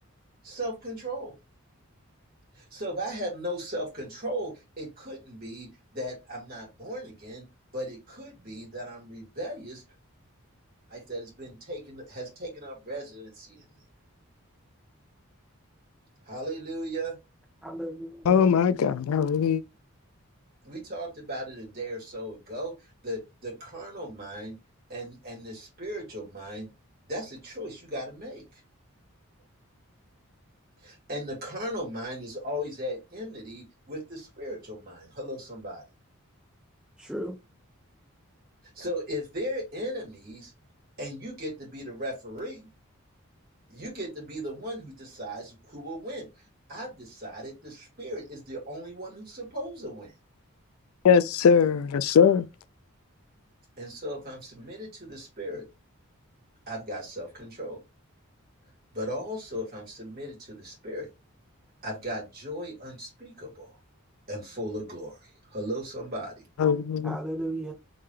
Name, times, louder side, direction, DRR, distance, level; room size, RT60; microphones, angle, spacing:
voice 1, 0.4-1.3 2.5-7.5 7.7-9.8 10.9-13.7 16.2-17.2 20.6-22.7 23.0-24.6 24.9-26.7 27.0-28.6 30.8-35.8 38.8-40.5 41.0-42.7 43.7-46.3 46.7-50.1 53.8-55.6 56.7-57.8 58.9-61.1 61.8-63.8 64.3-66.5, equal, 45° right, 2.3 m, -37 dB
voice 2, 17.6-18.5 37.0-37.3 67.0-67.7, right 1 dB, 5° right, 1.0 m, -34 dB
voice 3, 18.3-19.6 51.0-52.4 66.6-67.2, left 7 dB, 80° left, 0.4 m, -21 dB
3.8 x 3.2 x 3.1 m
head